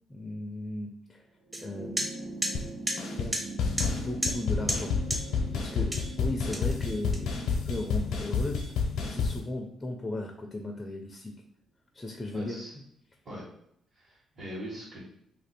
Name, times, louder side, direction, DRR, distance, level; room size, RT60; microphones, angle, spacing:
voice 1, 0.1-1.3 1.6-2.1 3.2-4.9 5.3-8.7 9.0-11.3 11.9-12.6, left 1 dB, 20° left, 2 dB, 0.4 m, -36 dB
sound 1, 1.4-10.1 11.3-11.4, right 2 dB, 65° right, 0.9 m, -43 dB
sound 2, 1.5-1.6 2.0-2.1 2.4-2.5 2.9-3.0 3.3-3.4 3.8-3.9 4.2-4.4 4.7-4.8 5.1-5.2 5.9-6.1 6.5-7.6, right 1 dB, 15° right, 0.7 m, -31 dB
sound 3, 2.5-2.7 3.0-3.3 3.6-9.4, left 5 dB, 85° left, 0.6 m, -30 dB
voice 2, 12.3-12.7 13.2-13.4 13.9-15.0, equal, 45° right, -7 dB, 1.3 m, -41 dB
2.8 x 2.6 x 4.1 m, 0.73 s
cardioid pair, 115°, 0 cm